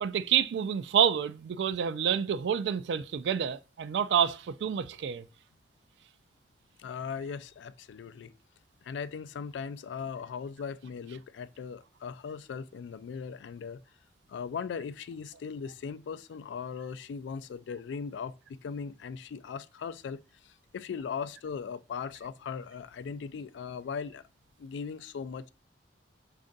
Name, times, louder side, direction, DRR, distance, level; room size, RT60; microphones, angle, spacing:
voice 1, 0.0-5.2, right 8 dB, 75° right, 0.3 m, -28 dB
voice 2, 6.8-8.3 8.8-13.8 14.3-24.2 24.6-25.5, left 6 dB, 90° left, 0.3 m, -39 dB
4.3 x 2.5 x 3.8 m
head